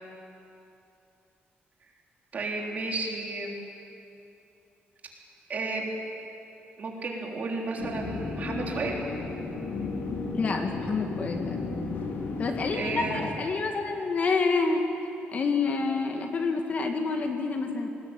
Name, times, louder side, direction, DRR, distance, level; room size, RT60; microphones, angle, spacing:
voice 1, 2.3-3.6 5.5-6.0 6.8-8.9 12.8-13.2, right 3 dB, 40° right, -1 dB, 3.7 m, -32 dB
sound 1, 7.8-13.3, left 3 dB, 60° left, 2.9 m, -34 dB
voice 2, 10.3-11.6 12.4-14.8 15.3-17.9, left 4 dB, 40° left, 4 dB, 1.9 m, -28 dB
19.5 x 19.5 x 9.1 m, 2.8 s
cardioid pair, 150°, 4 cm